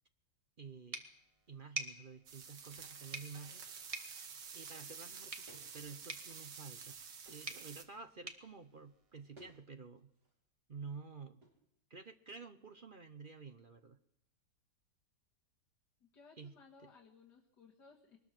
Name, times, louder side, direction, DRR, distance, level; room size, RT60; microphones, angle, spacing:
voice 1, 0.6-1.0 1.5-3.6 4.5-7.0 7.3-10.1 10.7-11.4 11.9-14.0 16.4-16.6 16.8-16.9, right 5 dB, 45° right, 9 dB, 0.7 m, -51 dB
sound 1, 0.9-9.6, right 2 dB, 20° right, 1.6 m, -50 dB
sound 2, 2.3-7.8, right 6 dB, 90° right, 2.1 m, -50 dB
sound 3, 5.5-5.7 6.1-6.8 7.2-7.6 9.3-9.6 9.9-10.3 11.4-11.6, right 1 dB, 65° right, 6.0 m, -61 dB
voice 2, 16.0-18.2, left 5 dB, 65° left, -3 dB, 2.6 m, -61 dB
22.5 x 20.0 x 6.0 m, 0.76 s
omnidirectional pair, 1.9 m